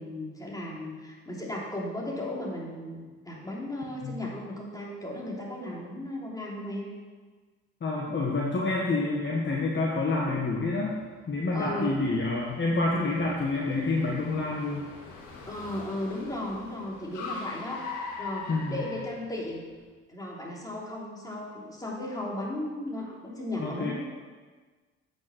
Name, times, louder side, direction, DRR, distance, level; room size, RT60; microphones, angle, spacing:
voice 1, 0.0-6.9 11.5-11.9 15.5-19.6 20.1-23.9, left 1 dB, 10° left, -4 dB, 3.2 m, -36 dB
voice 2, 7.8-11.0 11.3-14.8 18.5-18.7 23.6-23.9, left 3 dB, 40° left, -3 dB, 1.6 m, -28 dB
Car, 10.0-19.8, left 4 dB, 80° left, 1.8 m, -43 dB
8.6 x 6.1 x 6.3 m, 1.4 s
supercardioid pair, 70°, 29 cm